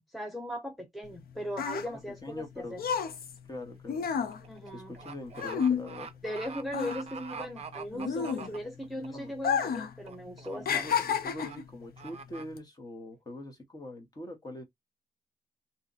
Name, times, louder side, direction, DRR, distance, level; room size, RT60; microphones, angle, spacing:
voice 1, 0.0-2.8 4.5-5.0 6.2-10.9, equal, ahead, 0.6 m, -38 dB
sound 1, 1.1-6.4 6.7-8.8 9.3-9.9 10.2-11.7 12.4-12.6, left 7 dB, 75° left, 0.6 m, -31 dB
voice 2, 1.9-2.8 3.5-4.1 4.7-6.1 8.7-9.3 10.5-14.6, left 1 dB, 25° left, 1.1 m, -43 dB
sound 2, 3.0-3.2 3.6-9.1 9.5-9.8 10.1-10.6 10.8-11.0 11.4-11.6 12.0-12.4, right 5 dB, 45° right, 0.6 m, -44 dB
2.8 x 2.4 x 3.9 m
wide cardioid pair, 155°, 15 cm